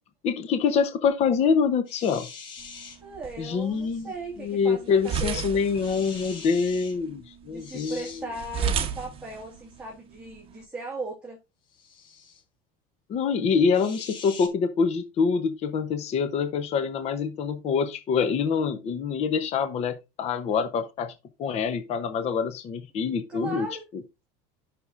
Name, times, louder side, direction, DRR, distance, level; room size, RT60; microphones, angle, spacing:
voice 1, 0.2-2.3 3.4-4.1 4.4-8.1 13.1-21.1 21.4-23.7, left 6 dB, 35° left, 0.8 m, -25 dB
sound 1, 1.9-3.0 3.8-4.1 5.8-6.9 7.6-8.2 11.7-12.4 13.7-14.5, left 5 dB, 60° left, 4.0 m, -43 dB
sound 2, 2.6-10.6, right 7 dB, 25° right, 1.0 m, -35 dB
voice 2, 3.0-5.4 7.5-11.4 23.3-23.8, right 3 dB, 5° right, 1.7 m, -37 dB
11.5 x 6.0 x 2.5 m
cardioid pair, 150°, 20 cm